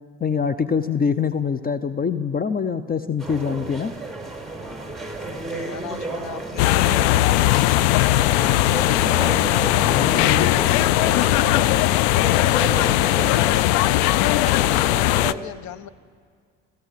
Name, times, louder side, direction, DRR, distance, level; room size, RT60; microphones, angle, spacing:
voice 1, 0.2-3.9 9.8-10.5, left 6 dB, 30° left, 12 dB, 0.9 m, -24 dB
sound 1, 3.2-15.4, right 3 dB, ahead, 4.7 m, -33 dB
voice 2, 5.2-15.9, left 10 dB, 65° left, 15 dB, 1.1 m, -37 dB
sound 2, 6.6-15.3, left 16 dB, 80° left, 0.6 m, -19 dB
25.0 x 15.0 x 9.5 m, 2.1 s
hypercardioid pair, 70°, 31 cm